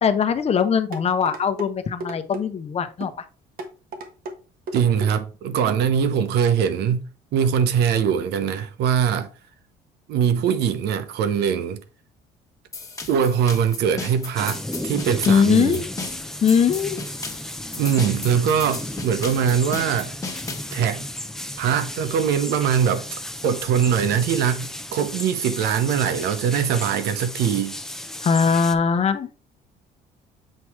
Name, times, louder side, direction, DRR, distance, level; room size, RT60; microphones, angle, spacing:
voice 1, 0.0-3.3 15.3-15.8 16.4-17.0 28.2-29.3, left 6 dB, 40° left, 0.9 m, -20 dB
sound 1, 0.9-1.7 2.0-2.4 3.0-3.2 3.6-4.4 4.7-5.1 5.7-5.8 6.3-6.4, right 2 dB, 60° right, 1.4 m, -34 dB
voice 2, 4.7-7.0 7.3-9.3 10.1-11.8 13.1-15.8 17.8-20.1 20.7-21.0 21.6-27.8, right 8 dB, 80° right, 0.9 m, -22 dB
sound 2, 12.7-20.7, left 3 dB, 20° left, 1.4 m, -36 dB
sound 3, 14.3-28.7, left 1 dB, 5° left, 0.6 m, -34 dB
7.7 x 2.9 x 4.8 m
cardioid pair, 110°, 17 cm